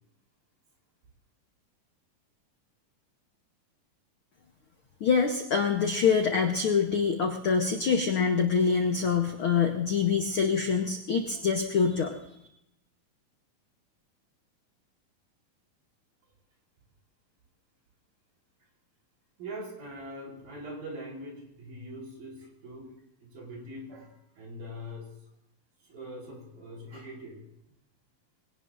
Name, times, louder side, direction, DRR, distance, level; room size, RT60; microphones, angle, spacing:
voice 1, 5.0-12.2, left 6 dB, 90° left, 3 dB, 1.1 m, -25 dB
voice 2, 19.4-22.9 23.2-25.1 25.8-27.4, equal, 85° right, -2 dB, 6.2 m, -42 dB
22.0 x 18.0 x 2.5 m, 0.81 s
omnidirectional pair, 4.0 m